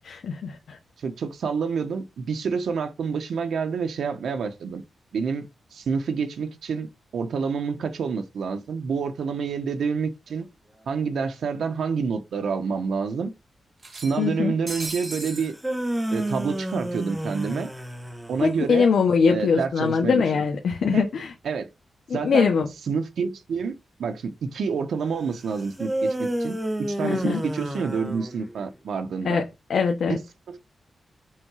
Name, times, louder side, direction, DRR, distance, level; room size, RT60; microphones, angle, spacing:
voice 1, 0.1-0.8 14.2-14.5 18.4-21.3 22.1-22.7 27.0-27.4 29.2-29.4 29.7-30.2, left 5 dB, 75° left, 1.1 m, -22 dB
voice 2, 1.0-4.8 5.1-6.9 7.1-10.5 10.9-13.3 13.9-15.5 16.1-17.7 18.3-18.9 19.3-20.4 20.9-21.1 21.4-21.7 22.1-22.5 22.9-26.6 26.9-29.4 30.1-30.2 30.5-30.6, right 5 dB, 80° right, 1.1 m, -28 dB
sound 1, 10.4-10.5 10.8-10.9 11.9-12.0 12.4-12.5 13.8-15.5, right 3 dB, 30° right, 1.7 m, -37 dB
sound 2, 15.4-18.6 25.8-28.7, right 1 dB, 10° right, 1.1 m, -30 dB
6.2 x 3.7 x 4.8 m
wide cardioid pair, 130°, 0 cm